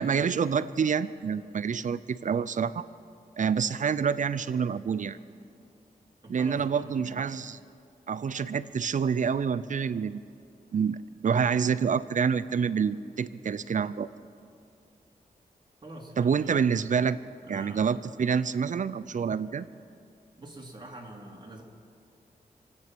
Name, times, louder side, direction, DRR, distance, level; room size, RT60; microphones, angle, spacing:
voice 1, 0.0-2.8 3.4-5.2 6.3-7.6 8.1-10.2 10.7-14.1 16.2-17.2 17.5-19.7, right 6 dB, 55° right, 15 dB, 0.5 m, -27 dB
voice 2, 6.2-7.2 15.8-16.7 17.4-17.8 20.4-21.6, right 1 dB, 30° right, -1 dB, 2.6 m, -45 dB
26.0 x 9.1 x 6.0 m, 2.4 s
wide cardioid pair, 85°, 16 cm